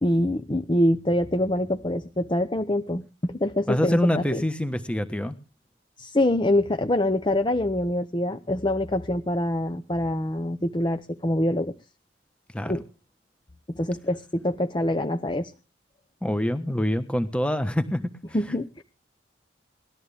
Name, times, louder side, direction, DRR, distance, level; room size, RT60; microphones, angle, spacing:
voice 1, 0.0-4.4 6.0-11.7 12.6-12.8 13.7-15.5 18.3-18.8, left 1 dB, 25° left, 8 dB, 0.8 m, -25 dB
voice 2, 3.7-5.3 12.5-12.7 16.2-18.1, left 1 dB, 5° left, 10 dB, 1.3 m, -25 dB
19.0 x 13.5 x 3.5 m, 0.34 s
head